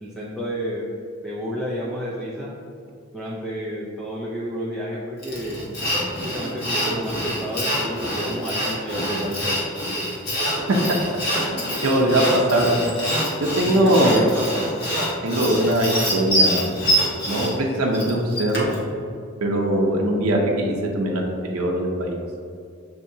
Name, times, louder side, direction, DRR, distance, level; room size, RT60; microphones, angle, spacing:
voice 1, 0.0-0.8 1.2-2.5 3.1-5.6 6.3-9.7 13.6-14.7, equal, ahead, -8 dB, 0.4 m, -30 dB
Sawing, 5.2-18.8, equal, 50° left, 1.0 m, -25 dB
voice 2, 10.7-11.0 11.5-11.6 11.8-12.8 13.4-14.2 15.2-16.7 17.3-18.7 19.4-22.2, right 1 dB, 85° right, 0 dB, 0.6 m, -21 dB
6.9 x 2.8 x 2.6 m, 2.4 s
head